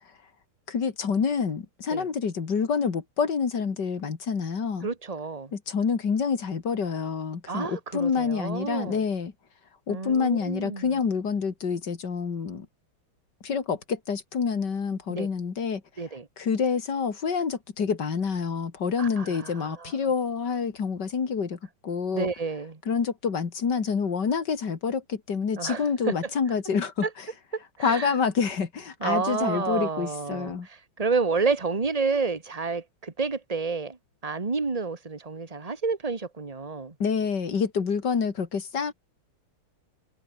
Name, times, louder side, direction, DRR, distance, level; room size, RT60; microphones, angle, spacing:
voice 1, 0.7-4.9 5.5-9.3 9.9-12.7 13.4-15.8 16.4-22.3 22.9-27.1 27.8-30.7 37.0-38.9, left 6 dB, 55° left, 2.8 m, -27 dB
voice 2, 4.8-5.5 7.5-9.0 9.9-10.9 15.1-15.3 16.0-16.3 19.0-20.0 22.1-22.8 25.6-26.3 27.0-27.1 27.5-28.1 29.0-34.0 34.2-37.0, right 4 dB, 20° right, 1.8 m, -30 dB
omnidirectional pair, 2.3 m